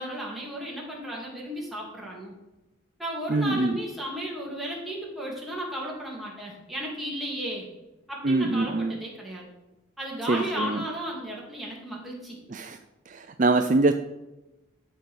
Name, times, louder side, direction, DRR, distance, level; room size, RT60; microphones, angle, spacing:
voice 1, 0.0-2.3 3.0-7.7 8.1-9.5 10.0-12.4, right 1 dB, ahead, -4 dB, 2.7 m, -34 dB
voice 2, 3.3-3.8 8.2-9.0 10.3-10.8 12.5-12.8 13.1-13.9, right 2 dB, 40° right, 7 dB, 0.5 m, -24 dB
12.5 x 5.4 x 6.4 m, 1.0 s
head